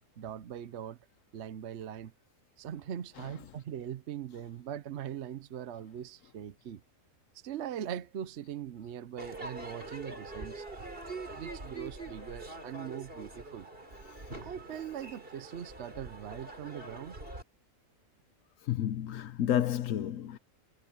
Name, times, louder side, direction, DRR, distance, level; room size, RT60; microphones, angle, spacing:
voice 1, 0.2-1.0 1.3-2.1 2.6-6.8 7.4-10.6 11.3-13.7 14.4-17.2, right 10 dB, 60° right, 0.9 m, -41 dB
Crowd / Fireworks, 9.2-17.4, right 2 dB, 40° right, 4.0 m, -44 dB
voice 2, 18.6-20.4, left 11 dB, 70° left, 1.0 m, -31 dB
omnidirectional pair, 1.4 m